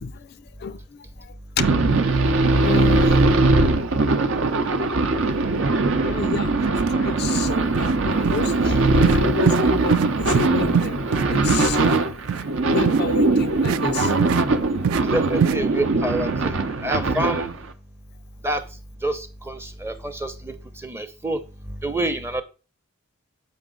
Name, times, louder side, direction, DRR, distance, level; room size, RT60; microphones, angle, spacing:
voice 1, 0.0-1.7 2.6-3.3 6.0-12.1 12.7-14.1, left 6 dB, 50° left, 0.3 m, -31 dB
sound 1, 1.6-17.6, right 2 dB, 60° right, 0.8 m, -21 dB
sound 2, 6.8-6.9 7.2-7.5 7.7-8.0 8.2-8.4 9.0-9.2 9.5-9.6 9.9-10.1 10.3-10.5 10.7-12.0 12.3-12.4 12.8-13.0 13.6-13.8 14.2-14.4 14.8-15.0 15.4-15.6, right 8 dB, 80° right, 0.3 m, -23 dB
voice 2, 15.0-17.5 18.4-18.6 19.0-21.4 21.7-22.4, right 1 dB, 10° right, 0.7 m, -27 dB
7.2 x 5.3 x 3.8 m
head